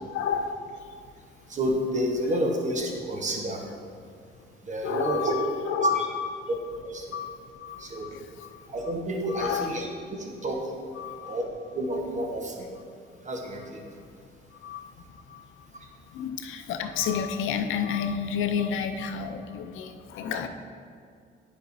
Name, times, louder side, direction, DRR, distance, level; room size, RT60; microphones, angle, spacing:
voice 1, 0.1-1.0 4.1-4.5 4.8-6.3 7.1-8.7 9.3-9.8 10.9-11.4 13.1-13.2 13.8-20.5, left 7 dB, 85° left, 7 dB, 0.5 m, -32 dB
voice 2, 1.5-3.7 4.6-5.3 5.8-6.1 6.8-7.1 7.7-8.1 8.7-9.9 10.2-10.7 11.2-11.4 11.7-12.7 13.2-13.8, right 1 dB, 35° right, 1 dB, 1.2 m, -29 dB
9.4 x 5.0 x 2.7 m, 2.3 s
cardioid pair, 90°, 20 cm